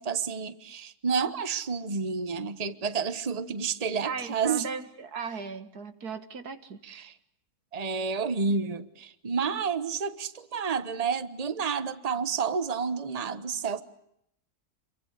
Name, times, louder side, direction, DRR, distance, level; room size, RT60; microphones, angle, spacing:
voice 1, 0.0-4.7 6.8-7.1 7.7-13.8, right 5 dB, 25° right, 13 dB, 1.2 m, -30 dB
voice 2, 4.0-6.8, right 5 dB, 85° right, 11 dB, 2.2 m, -37 dB
28.5 x 23.0 x 8.2 m, 0.73 s
omnidirectional pair, 1.6 m